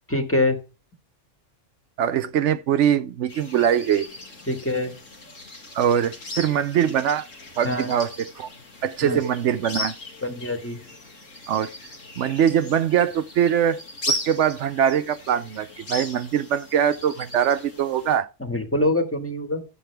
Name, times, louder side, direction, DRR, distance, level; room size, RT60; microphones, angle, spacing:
voice 1, 0.1-0.6 4.5-4.9 7.6-7.9 9.0-9.2 10.2-10.8 18.4-19.6, left 1 dB, 10° left, 1.5 m, -24 dB
voice 2, 2.0-4.1 5.7-7.3 7.6-8.5 8.8-9.9 11.5-11.7 12.2-13.8 14.1-18.3, right 9 dB, 75° right, 0.9 m, -22 dB
sound 1, 3.3-18.2, left 1 dB, 85° left, 2.6 m, -37 dB
10.5 x 7.6 x 3.4 m
omnidirectional pair, 1.3 m